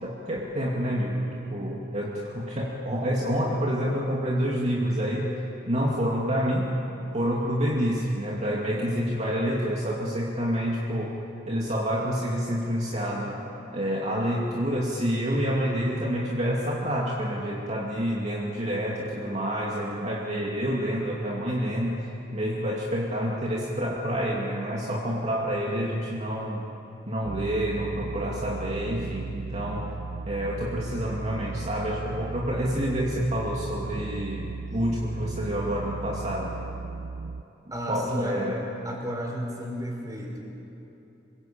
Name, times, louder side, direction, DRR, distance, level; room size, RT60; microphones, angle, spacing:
voice 1, 0.0-5.3 5.7-6.7 7.1-11.2 11.5-13.4 13.7-21.9 22.3-26.7 27.1-29.9 30.3-36.6 37.9-38.6, equal, 40° right, -3 dB, 2.6 m, -28 dB
sound 1, 27.2-37.4, right 4 dB, 80° right, 0.5 m, -36 dB
voice 2, 37.7-38.4 38.8-40.4, equal, 20° right, 0 dB, 5.2 m, -32 dB
26.5 x 22.0 x 8.7 m, 2.9 s
head